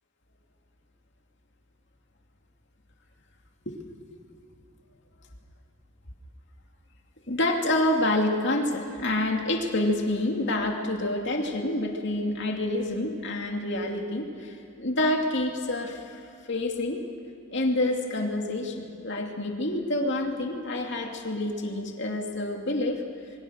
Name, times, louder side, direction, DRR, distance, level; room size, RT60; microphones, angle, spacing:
voice 1, 7.3-16.1 16.5-17.0 17.5-23.0, left 1 dB, 55° left, 1 dB, 2.6 m, -27 dB
28.0 x 23.0 x 6.5 m, 2.7 s
head